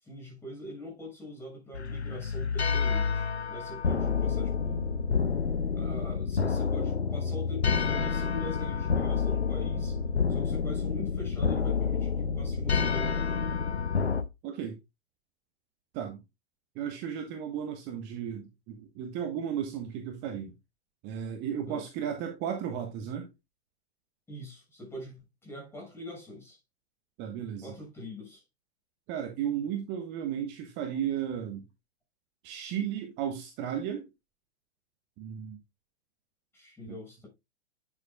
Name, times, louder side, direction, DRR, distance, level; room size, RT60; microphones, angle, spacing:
voice 1, 0.0-4.9 5.7-10.0 10.3-13.3 21.7-21.8 24.3-26.6 27.6-28.4 36.5-37.3, left 1 dB, 5° left, 6.5 m, -43 dB
sound 1, 1.7-14.2, left 5 dB, 80° left, 1.0 m, -29 dB
voice 2, 14.4-14.8 15.9-16.2 16.7-20.5 21.0-23.3 27.2-27.8 29.1-31.7 32.4-34.1 35.2-35.6 36.9-37.0, right 9 dB, 35° right, 1.4 m, -34 dB
10.5 x 7.5 x 2.3 m
figure-of-eight pair, 105°, 32 cm